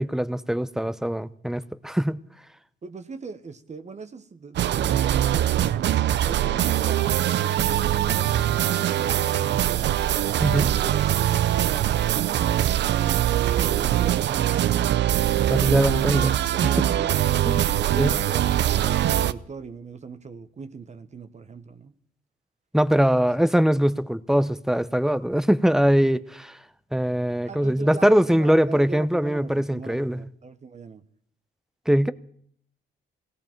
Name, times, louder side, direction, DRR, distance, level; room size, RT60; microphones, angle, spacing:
voice 1, 0.0-2.2 10.4-10.8 15.5-16.3 16.6-16.8 17.5-17.7 18.0-18.2 22.7-26.6 26.9-30.3 31.9-32.1, equal, ahead, 0.7 m, -22 dB
voice 2, 2.8-7.2 7.7-10.2 10.8-11.9 13.0-16.2 16.5-17.2 17.8-21.9 23.1-23.2 27.3-31.0, right 4 dB, 35° right, 1.1 m, -40 dB
sound 1, 4.5-19.3, right 12 dB, 60° right, 0.5 m, -22 dB
18.0 x 17.0 x 4.5 m
cardioid pair, 90°, 20 cm